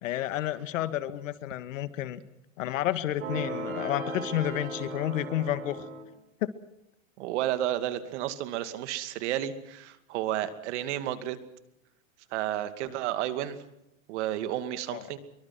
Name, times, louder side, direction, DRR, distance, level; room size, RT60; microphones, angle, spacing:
voice 1, 0.0-2.2 2.6-5.8 6.4-6.5 14.9-15.1, left 13 dB, 70° left, 13 dB, 2.1 m, -30 dB
sound 1, 3.2-6.0, right 2 dB, 90° right, 6.7 m, -36 dB
voice 2, 7.2-11.4 12.3-13.6 14.1-15.2, right 12 dB, 60° right, 11 dB, 2.6 m, -31 dB
25.5 x 23.5 x 6.2 m, 0.81 s
supercardioid pair, 145°, 40 cm